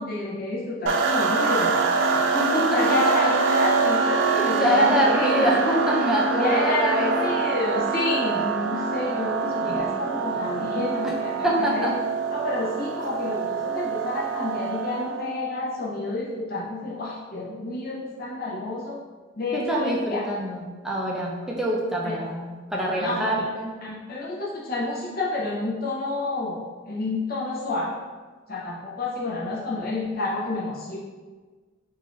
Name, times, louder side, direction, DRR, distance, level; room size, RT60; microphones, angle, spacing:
voice 1, 0.0-1.7 2.7-5.5 6.4-11.9 12.3-19.0 19.4-20.2 22.0-22.1 23.0-23.3 23.8-27.9 28.5-31.0, left 2 dB, 45° left, -4 dB, 0.7 m, -29 dB
sound 1, 0.9-15.4, right 4 dB, 65° right, 0.4 m, -25 dB
voice 2, 2.1-3.0 3.2-3.3 4.4-7.4 11.0-11.1 11.4-11.9 19.5-23.7, equal, 5° right, -3 dB, 0.5 m, -25 dB
3.7 x 2.5 x 3.1 m, 1.4 s
head